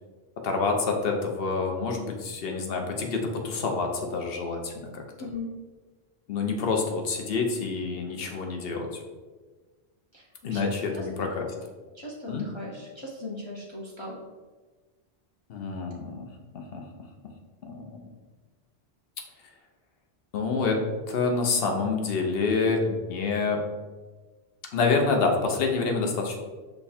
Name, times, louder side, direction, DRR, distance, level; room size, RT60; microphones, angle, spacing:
voice 1, 0.4-5.0 6.3-8.9 10.4-11.5 12.3-12.4 15.5-16.3 16.5-16.8 17.6-17.8 20.3-20.8 21.1-23.6 24.7-26.4, left 4 dB, 65° left, 2 dB, 0.9 m, -27 dB
voice 2, 5.2-5.5 10.1-10.7 10.9-11.3 11.9-14.2, left 1 dB, 30° left, -4 dB, 0.6 m, -38 dB
5.6 x 2.3 x 4.2 m, 1.3 s
omnidirectional pair, 1.1 m